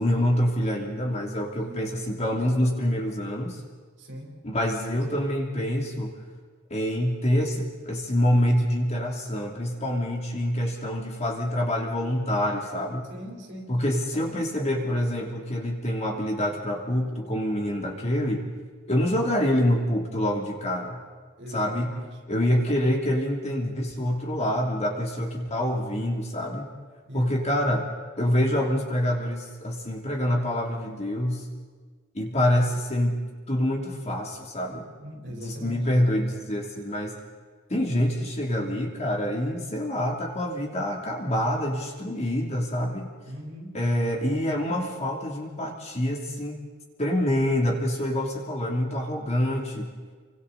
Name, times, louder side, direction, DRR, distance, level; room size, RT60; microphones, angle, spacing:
voice 1, 0.0-3.6 4.4-6.2 6.7-13.1 13.7-18.4 18.9-21.0 21.5-21.9 22.3-26.7 27.1-27.9 28.2-31.5 32.1-33.2 33.5-34.9 35.3-37.1 37.7-43.1 43.7-46.6 47.0-49.9, left 1 dB, 30° left, 0 dB, 3.1 m, -26 dB
voice 2, 1.6-1.9 4.0-4.4 13.1-14.0 21.4-22.2 27.0-27.3 35.0-35.9 43.3-43.8, equal, 55° right, 0 dB, 4.1 m, -40 dB
29.5 x 24.5 x 4.2 m, 1.5 s
head